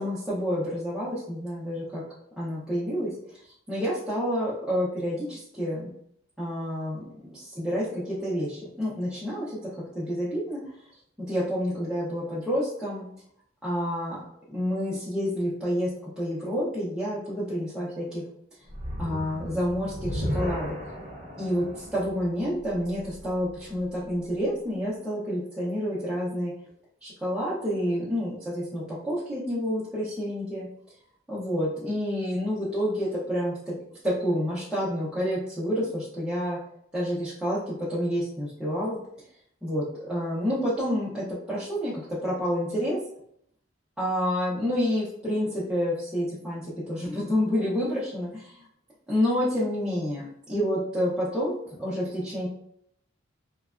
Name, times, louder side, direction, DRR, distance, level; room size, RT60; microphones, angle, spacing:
voice 1, 0.0-2.0 2.4-3.1 3.7-5.9 6.4-7.0 7.3-9.6 9.9-10.6 11.3-13.0 13.6-14.2 14.5-15.9 16.2-18.2 19.0-20.7 21.4-26.5 27.0-30.7 31.3-33.7 34.0-36.6 36.9-39.0 39.6-43.0 44.0-48.6 49.1-52.5, equal, 5° right, -10 dB, 0.6 m, -29 dB
sound 1, 18.7-24.0, equal, 40° right, 0.7 m, -35 dB
3.1 x 2.2 x 2.4 m, 0.70 s
head